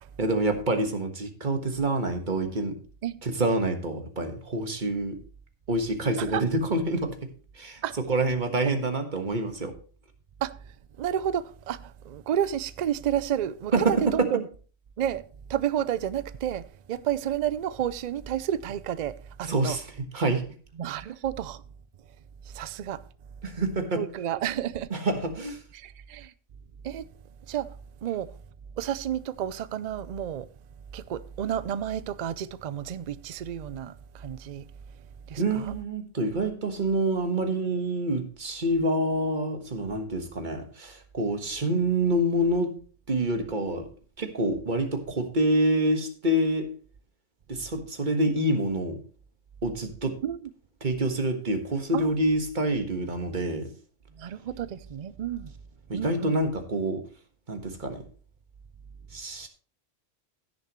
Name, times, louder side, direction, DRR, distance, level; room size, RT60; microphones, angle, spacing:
voice 1, 0.2-2.7 3.2-5.2 5.7-7.3 7.5-7.8 8.1-9.7 13.7-13.9 19.5-19.8 20.1-20.4 23.4-24.0 24.9-25.6 35.4-42.7 43.1-43.9 44.2-46.7 47.5-49.0 49.6-50.1 50.8-53.7 55.9-57.0 57.5-58.0 59.1-59.5, right 1 dB, 40° right, 1.6 m, -27 dB
voice 2, 11.0-14.5 15.0-15.2 15.5-19.8 20.8-21.6 22.5-23.0 23.9-24.9 25.7-26.3 26.8-27.1 27.5-27.8 28.0-28.4 28.8-30.5 30.9-34.6 35.3-35.7 50.2-50.5 51.9-52.1 54.1-55.5 55.9-56.4, right 10 dB, 55° right, 0.4 m, -31 dB
15.5 x 7.0 x 3.0 m
omnidirectional pair, 1.3 m